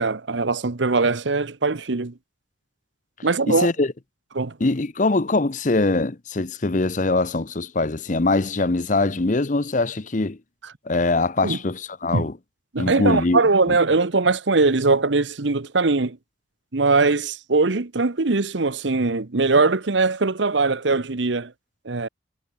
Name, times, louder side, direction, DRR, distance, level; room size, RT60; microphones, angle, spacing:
voice 1, 0.0-2.1 3.2-3.7 4.3-4.5 11.4-11.6 12.1-12.2 12.7-16.2 16.7-21.5 21.8-22.1, right 3 dB, 75° right, 1.0 m, -21 dB
voice 2, 3.5-3.9 4.6-10.4 10.9-12.3 12.8-13.4 13.7-13.8, left 2 dB, 40° left, 0.8 m, -22 dB
head